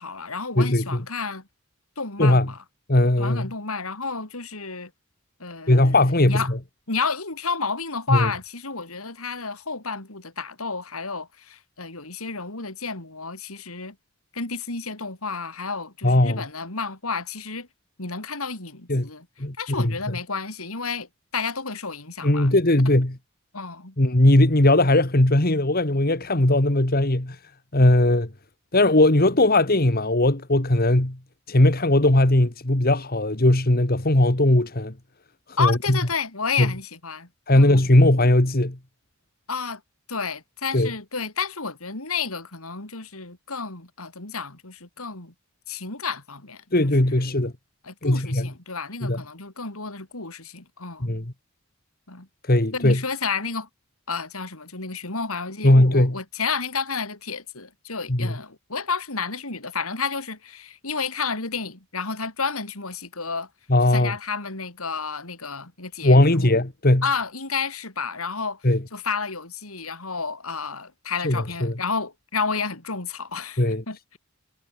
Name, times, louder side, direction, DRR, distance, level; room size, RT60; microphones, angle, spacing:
voice 1, 0.0-1.5 2.0-2.6 3.2-4.9 5.4-6.0 6.2-6.5 6.9-14.0 14.3-17.7 18.0-19.3 19.6-22.5 23.5-23.9 35.6-37.3 37.5-37.8 39.5-39.8 40.1-45.3 45.7-46.6 47.0-47.2 47.8-51.1 52.1-52.3 52.7-53.7 54.1-63.5 63.9-66.5 67.0-74.0, left 5 dB, 85° left, 4.7 m, -31 dB
voice 2, 2.9-3.5 5.7-6.6 8.1-8.3 16.0-16.4 18.9-19.1 19.4-19.9 22.2-23.2 24.0-27.4 27.7-28.3 28.7-31.2 31.5-34.9 35.6-36.0 36.6-36.7 37.5-38.8 40.7-40.9 46.7-47.5 48.0-48.5 49.0-49.2 51.0-51.3 52.5-53.0 55.6-56.2 58.1-58.3 63.7-64.1 66.0-67.0 68.6-68.8 71.2-71.7 73.6-73.8, left 1 dB, 45° left, 2.1 m, -19 dB
head